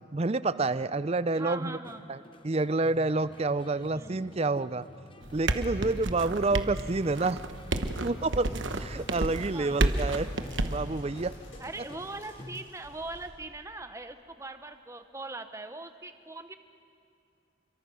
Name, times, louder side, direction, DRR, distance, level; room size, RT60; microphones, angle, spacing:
voice 1, 0.1-1.8 2.1-2.2 2.4-4.8 5.3-7.4 8.0-10.3 10.6-11.3, right 3 dB, 30° right, 15 dB, 0.5 m, -28 dB
voice 2, 1.4-2.0 3.9-4.3 6.5-6.8 9.5-10.0 11.6-16.6, right 2 dB, 15° right, 9 dB, 1.0 m, -41 dB
sound 1, 1.8-12.7, left 1 dB, 25° left, 0.9 m, -48 dB
sound 2, 5.2-10.8, right 2 dB, 65° right, 1.2 m, -30 dB
sound 3, 8.0-13.3, left 1 dB, 65° left, 6.9 m, -55 dB
30.0 x 23.0 x 6.3 m, 2.4 s
head